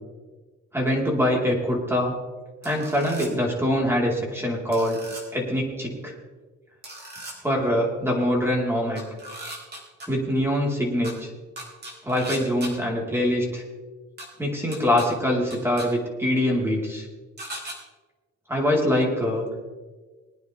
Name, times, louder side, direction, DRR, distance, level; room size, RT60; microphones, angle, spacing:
voice 1, 0.7-2.1 2.6-5.0 5.3-6.1 7.4-9.0 10.1-11.3 12.0-13.6 14.4-17.1 18.5-19.5, equal, 10° right, -2 dB, 4.2 m, -24 dB
sound 1, 2.6-3.3 4.7-5.2 6.8-7.3 9.0-10.1 11.0-11.1 11.6-12.7 14.2-14.3 14.7-15.1 15.5-15.9 17.4-17.8, right 1 dB, 35° right, 4.3 m, -37 dB
22.0 x 9.4 x 3.5 m, 1.3 s
cardioid pair, 90°, 30 cm